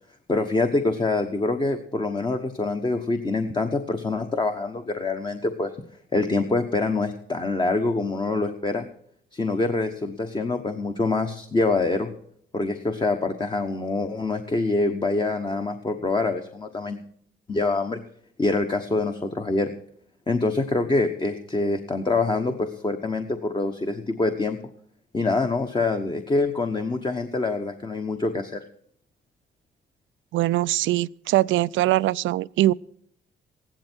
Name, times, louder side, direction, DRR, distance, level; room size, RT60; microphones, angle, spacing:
voice 1, 0.3-5.7 6.1-8.9 9.3-12.1 12.5-17.0 17.5-18.0 18.4-19.7 20.3-24.6 25.1-28.6, left 3 dB, 25° left, 1.1 m, -25 dB
voice 2, 30.3-32.7, right 16 dB, 75° right, 0.4 m, -22 dB
15.0 x 11.5 x 4.5 m
cardioid pair, 90°, 20 cm